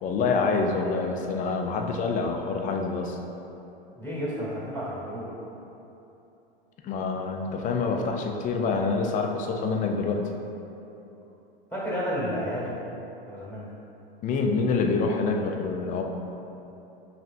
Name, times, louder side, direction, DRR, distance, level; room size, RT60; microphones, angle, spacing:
voice 1, 0.0-3.2 6.8-10.2 14.2-16.0, left 4 dB, 25° left, 2 dB, 0.4 m, -26 dB
voice 2, 3.9-5.3 11.7-12.8 13.3-13.7, equal, 5° left, -7 dB, 1.2 m, -31 dB
5.5 x 3.2 x 2.5 m, 3.0 s
hypercardioid pair, 100°, 29 cm